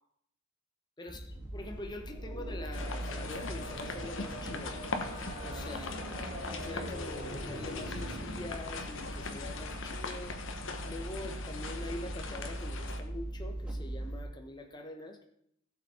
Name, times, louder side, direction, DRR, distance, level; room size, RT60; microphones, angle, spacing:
sound 1, 1.1-14.2, right 1 dB, 5° right, 1.6 m, -42 dB
voice 1, 1.5-4.8 5.4-6.0 6.5-10.4 10.8-15.3, left 2 dB, 20° left, 4 dB, 1.0 m, -44 dB
sound 2, 2.0-8.5, equal, 45° left, 4.2 m, -44 dB
sound 3, 2.7-13.0, left 3 dB, 60° left, 1.1 m, -41 dB
15.5 x 6.9 x 4.4 m, 0.71 s
head